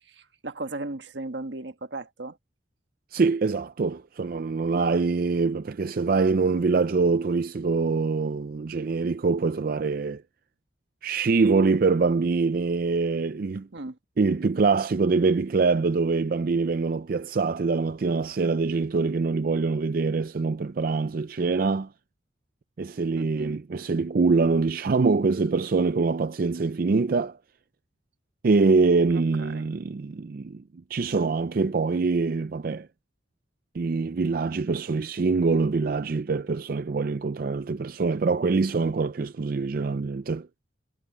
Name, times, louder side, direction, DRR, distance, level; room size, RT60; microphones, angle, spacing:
voice 1, 0.1-2.4 13.7-14.0 23.1-23.6 29.1-29.7, right 2 dB, 75° right, 1.4 m, -36 dB
voice 2, 3.1-10.2 11.0-13.7 14.2-21.9 22.8-27.4 28.4-30.6 30.9-32.9 33.7-40.5, right 4 dB, 50° right, 0.4 m, -24 dB
head